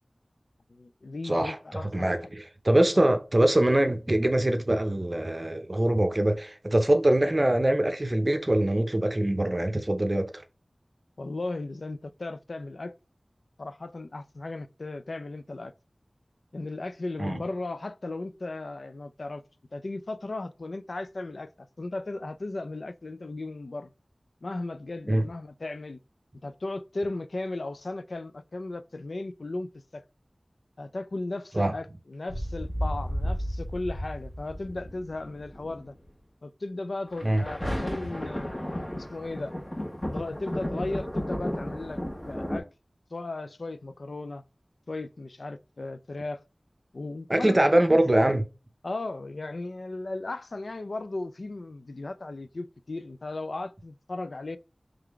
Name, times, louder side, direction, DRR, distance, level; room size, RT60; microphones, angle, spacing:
voice 1, 0.7-2.3 11.2-12.9 13.6-15.7 16.5-19.4 19.7-23.9 24.4-26.0 26.4-30.0 30.8-36.0 36.4-39.5 40.1-42.7 43.1-44.4 44.9-46.4 46.9-48.3 48.8-54.6, left 2 dB, 80° left, 0.4 m, -36 dB
voice 2, 1.2-1.6 1.9-10.4 17.2-17.4 25.1-25.2 31.6-31.7 37.2-37.4 47.3-48.4, right 1 dB, 35° right, 0.6 m, -23 dB
sound 1, 32.3-35.9 37.1-42.6, equal, 30° left, 1.4 m, -33 dB
3.7 x 3.3 x 3.4 m
wide cardioid pair, 45°, 0 cm